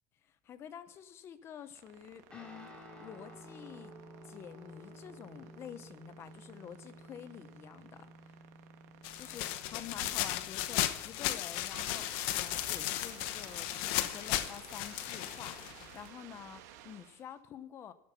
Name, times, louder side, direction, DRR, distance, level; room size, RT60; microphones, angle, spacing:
voice 1, 0.4-2.7 3.0-3.9 4.2-8.3 9.2-17.9, left 9 dB, 30° left, 12 dB, 0.9 m, -49 dB
sound 1, 1.4-17.3, right 11 dB, 90° right, 1.6 m, -55 dB
Guitar, 2.3-11.1, equal, 10° left, 3.2 m, -54 dB
sound 2, 9.0-16.1, left 14 dB, 65° left, 1.0 m, -35 dB
13.0 x 12.0 x 5.9 m, 0.86 s
cardioid pair, 170°, 9 cm